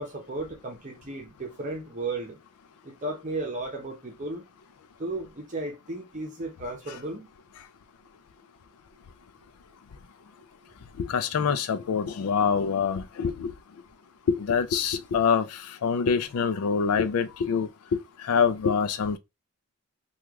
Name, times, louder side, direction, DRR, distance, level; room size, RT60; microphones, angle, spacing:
voice 1, 0.0-2.4 2.8-4.4 5.0-7.3, right 2 dB, 35° right, 0.7 m, -34 dB
voice 2, 11.0-13.5 14.3-19.2, left 6 dB, 85° left, 0.4 m, -25 dB
3.2 x 2.3 x 3.5 m
head